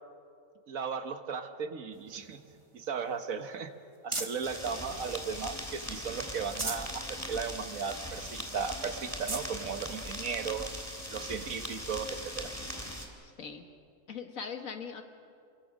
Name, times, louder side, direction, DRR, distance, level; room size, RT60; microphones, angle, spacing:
voice 1, 0.7-2.4 2.7-3.7 4.0-10.7 11.1-12.5, right 6 dB, 90° right, 8 dB, 1.6 m, -36 dB
sound 1, 1.9-4.6 5.1-5.9 6.3-7.0 7.4-7.5 7.9-8.0 8.6-8.7 9.0-9.5 10.3-10.4 12.2-12.3, right 2 dB, 25° right, 1.3 m, -40 dB
sound 2, 4.4-13.1, equal, 10° left, 3.3 m, -40 dB
voice 2, 14.1-15.0, left 6 dB, 85° left, 6 dB, 1.9 m, -40 dB
28.0 x 22.5 x 6.4 m, 2.4 s
omnidirectional pair, 1.4 m